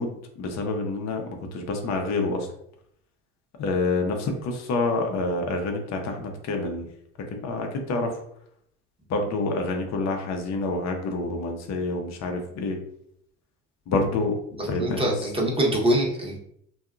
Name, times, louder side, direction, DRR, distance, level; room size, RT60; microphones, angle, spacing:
voice 1, 0.0-2.5 3.6-6.9 7.3-8.1 9.1-12.8 13.9-14.3 14.6-15.3, left 3 dB, 45° left, 3 dB, 0.7 m, -27 dB
voice 2, 14.6-16.4, right 1 dB, 15° right, -2 dB, 1.0 m, -24 dB
2.6 x 2.3 x 2.4 m, 0.70 s
hypercardioid pair, 60°, 39 cm